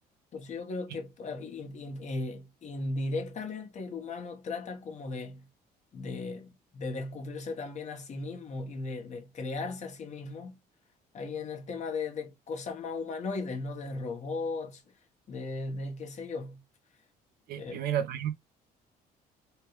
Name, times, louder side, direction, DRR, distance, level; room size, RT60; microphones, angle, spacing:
voice 1, 0.3-5.5 5.9-10.6 11.1-14.8 15.3-16.6 17.6-17.8, left 3 dB, 45° left, 1.1 m, -37 dB
voice 2, 17.5-18.3, right 10 dB, 65° right, 0.7 m, -31 dB
3.4 x 2.3 x 3.0 m
cardioid pair, 110°, 17 cm